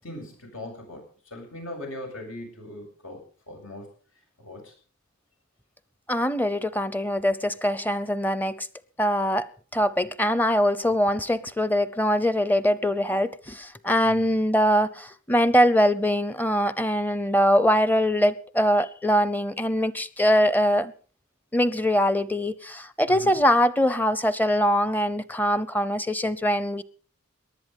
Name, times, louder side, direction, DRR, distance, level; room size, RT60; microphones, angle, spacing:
voice 1, 0.0-3.2 3.5-3.9 4.4-4.7 14.0-14.3 23.1-23.4, left 1 dB, 85° left, 2 dB, 7.4 m, -40 dB
voice 2, 6.1-8.7 9.0-20.9 21.5-26.8, equal, 10° left, 17 dB, 0.7 m, -23 dB
19.0 x 11.5 x 5.4 m, 0.41 s
head